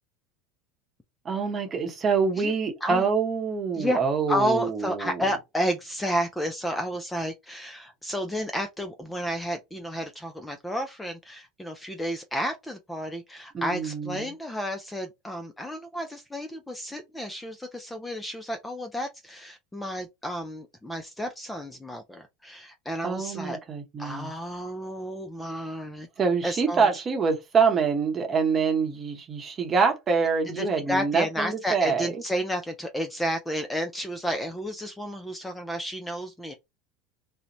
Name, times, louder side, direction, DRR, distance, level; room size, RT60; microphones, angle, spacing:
voice 1, 1.2-5.2 13.5-14.3 23.0-24.3 26.2-32.2, right 5 dB, 30° right, 0.8 m, -25 dB
voice 2, 4.3-23.6 24.0-26.1 26.4-26.9 30.5-36.5, equal, 5° left, 0.4 m, -31 dB
2.5 x 2.1 x 2.9 m
supercardioid pair, 110°, 0 cm